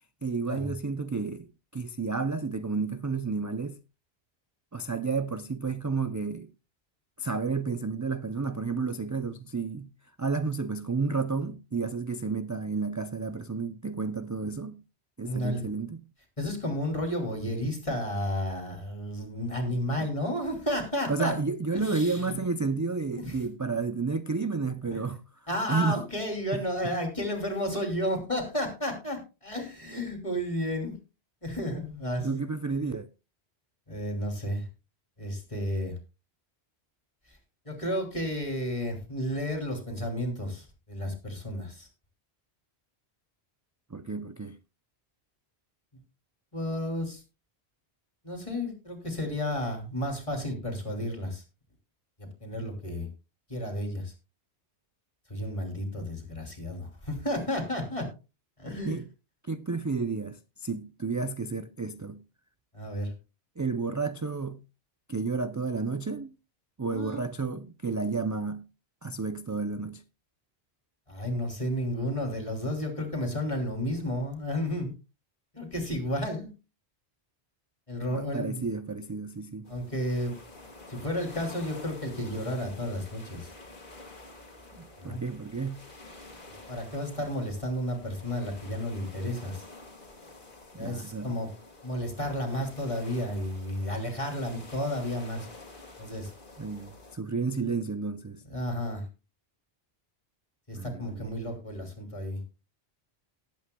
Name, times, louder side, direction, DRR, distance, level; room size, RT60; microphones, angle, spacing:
voice 1, 0.2-3.8 4.7-6.5 7.2-9.9 10.2-14.8 15.2-16.0 19.7-20.1 21.1-25.2 25.7-26.0 26.5-26.9 32.2-33.1 43.9-44.6 58.8-59.1 59.5-62.2 63.6-64.6 65.1-66.3 66.8-68.7 69.0-70.0 78.1-79.7 84.8-85.9 90.7-91.3 96.6-98.4 100.7-101.3, right 4 dB, 30° right, 0.3 m, -31 dB
voice 2, 15.2-15.7 16.4-21.3 21.7-22.4 23.2-23.4 24.9-25.0 25.5-31.0 31.4-32.4 33.9-34.7 35.2-35.9 37.6-41.9 46.5-47.2 48.2-51.4 52.2-53.1 53.5-54.1 55.3-58.1 58.6-59.0 62.7-63.1 66.9-67.2 71.1-74.9 75.5-76.5 77.9-78.7 79.7-80.3 80.9-83.5 85.0-85.2 86.7-89.6 90.8-91.5 91.8-95.5 96.0-96.3 98.5-99.1 100.7-102.4, left 1 dB, 30° left, 3.0 m, -32 dB
sound 1, 79.7-97.2, left 2 dB, 50° left, 2.2 m, -49 dB
19.0 x 8.5 x 2.2 m
omnidirectional pair, 1.1 m